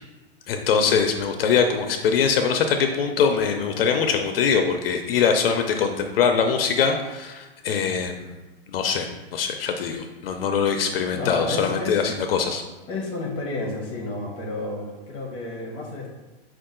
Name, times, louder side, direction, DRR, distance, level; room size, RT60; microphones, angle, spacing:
voice 1, 0.5-8.3 8.7-12.6, left 6 dB, 65° left, 5 dB, 0.6 m, -23 dB
voice 2, 11.1-12.0 12.9-16.1, left 2 dB, 15° left, -2 dB, 0.8 m, -31 dB
5.3 x 2.5 x 3.7 m, 1.1 s
supercardioid pair, 165°, 31 cm